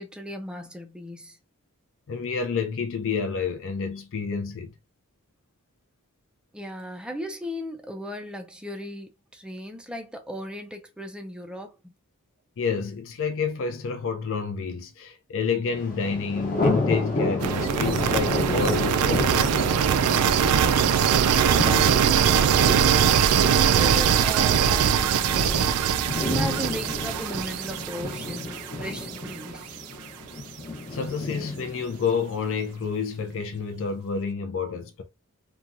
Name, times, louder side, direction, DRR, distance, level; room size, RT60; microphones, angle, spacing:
voice 1, 0.0-1.4 6.5-11.9 23.7-29.7, equal, 5° right, 0.4 m, -36 dB
voice 2, 2.1-4.7 12.6-19.5 30.9-35.0, left 5 dB, 60° left, 0.5 m, -29 dB
Thunder, 15.7-32.7, left 2 dB, 40° left, 0.8 m, -32 dB
sound 1, 17.4-29.3, right 8 dB, 90° right, 0.3 m, -22 dB
2.9 x 2.2 x 2.4 m
head